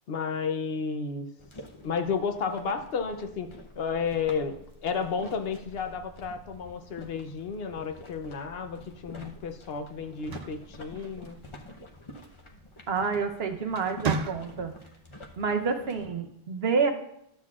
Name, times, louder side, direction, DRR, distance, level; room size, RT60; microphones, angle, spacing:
voice 1, 0.1-1.3 1.8-11.4, left 5 dB, 70° left, 8 dB, 0.9 m, -32 dB
sound 1, 1.4-16.1, left 1 dB, 30° left, 0.9 m, -48 dB
sound 2, 10.0-11.6 13.0-13.3 13.7-14.9, right 5 dB, 50° right, 0.5 m, -34 dB
voice 2, 12.9-14.7 15.4-16.9, right 5 dB, 70° right, 4 dB, 1.1 m, -28 dB
12.5 x 7.7 x 2.4 m, 0.78 s
omnidirectional pair, 1.1 m